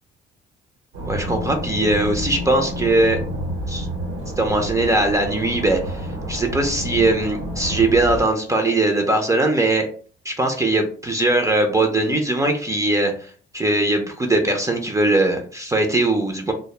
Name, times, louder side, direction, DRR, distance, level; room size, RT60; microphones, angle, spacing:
sound 1, 0.9-8.2, equal, 85° right, 0.9 m, -29 dB
voice 1, 1.0-3.2 3.7-3.9 4.4-9.9 10.2-16.5, right 2 dB, 15° right, 3 dB, 0.4 m, -20 dB
2.0 x 2.0 x 3.1 m, 0.43 s
cardioid pair, 90°, 20 cm